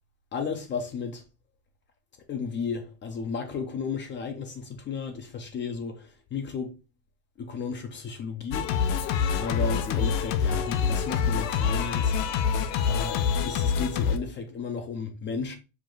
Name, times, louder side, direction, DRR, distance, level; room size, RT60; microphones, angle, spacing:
voice 1, 0.3-1.2 2.3-6.7 7.4-9.1 9.4-12.1 12.9-15.6, left 5 dB, 25° left, 0.4 m, -34 dB
Singing, 8.5-14.2, left 6 dB, 80° left, 0.7 m, -26 dB
5.0 x 2.4 x 3.7 m
cardioid pair, 140°, 48 cm